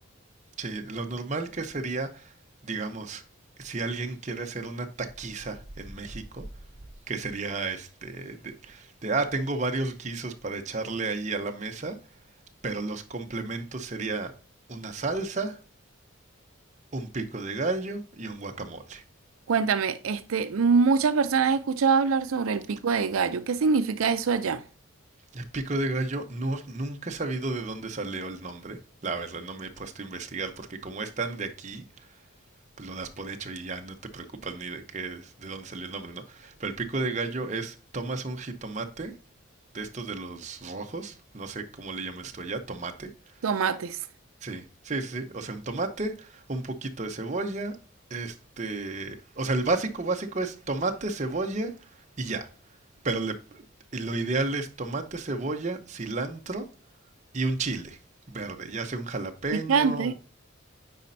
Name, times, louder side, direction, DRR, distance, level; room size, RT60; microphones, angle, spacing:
voice 1, 0.6-2.3 2.6-3.2 3.6-6.4 7.1-12.0 12.6-14.3 14.7-15.6 16.9-19.0 25.3-32.1 32.8-39.1 39.7-43.1 44.4-47.8 48.1-52.5 53.0-53.6 53.9-56.7 57.3-58.0 58.3-60.1, right 3 dB, 35° right, 0.8 m, -32 dB
voice 2, 19.5-24.6 43.4-44.1 59.7-60.1, right 5 dB, 80° right, 0.5 m, -24 dB
9.5 x 4.2 x 2.6 m
head